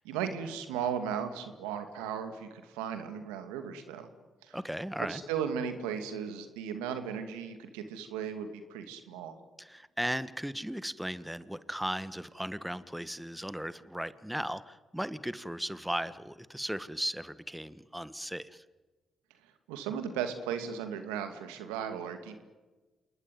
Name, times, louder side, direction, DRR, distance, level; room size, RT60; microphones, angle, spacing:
voice 1, 0.0-4.1 4.4-4.6 5.1-9.4 19.7-22.5, right 8 dB, 90° right, 8 dB, 2.4 m, -36 dB
voice 2, 4.5-5.2 9.6-18.6, equal, 5° right, 15 dB, 1.5 m, -36 dB
28.0 x 20.5 x 9.4 m, 1.2 s
hypercardioid pair, 45°, 0 cm